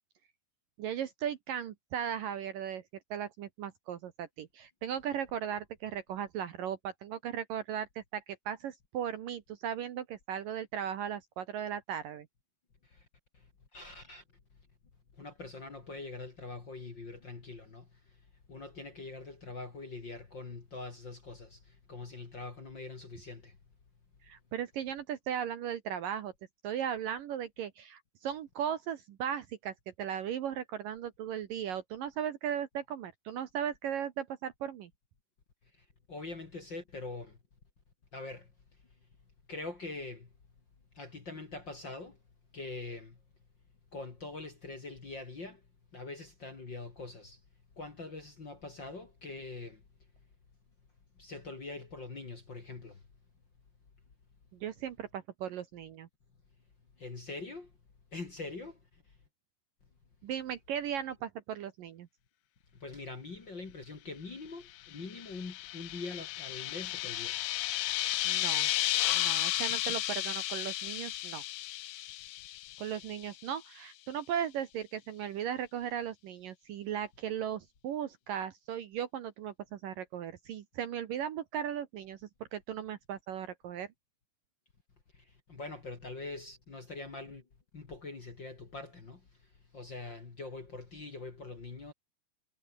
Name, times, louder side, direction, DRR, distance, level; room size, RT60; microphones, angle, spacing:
voice 1, 0.8-2.8 3.1-12.3 24.2-26.3 26.6-34.9 54.5-56.1 60.2-62.1 68.2-68.7 69.1-71.4 72.8-83.9, right 9 dB, 65° right, 2.5 m, -37 dB
voice 2, 13.3-14.2 15.1-23.6 35.7-37.4 38.1-38.5 39.5-40.3 40.9-42.2 42.5-43.2 43.9-45.6 45.9-47.4 47.8-49.8 51.2-53.0 57.0-57.7 58.1-59.0 62.7-67.4 69.8-69.9 72.7-72.8 85.1-87.5 87.7-91.9, left 3 dB, 30° left, 2.5 m, -44 dB
sound 1, 64.9-73.2, left 15 dB, 75° left, 3.1 m, -33 dB
omnidirectional pair, 5.0 m